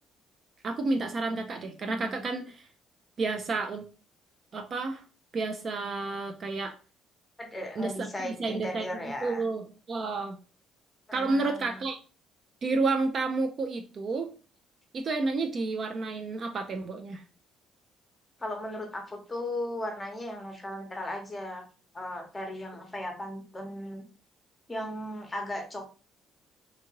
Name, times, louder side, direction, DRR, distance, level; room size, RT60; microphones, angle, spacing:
voice 1, 0.6-2.7 3.2-3.8 4.5-5.0 5.3-6.8 7.8-10.4 11.1-12.0 12.6-14.3 14.9-17.2, right 3 dB, 40° right, 5 dB, 0.3 m, -30 dB
voice 2, 7.4-9.4 11.1-11.6 18.4-21.6 21.9-24.0 24.7-26.0, left 1 dB, 15° left, 3 dB, 0.8 m, -36 dB
2.6 x 2.6 x 2.8 m, 0.36 s
cardioid pair, 130°, 0 cm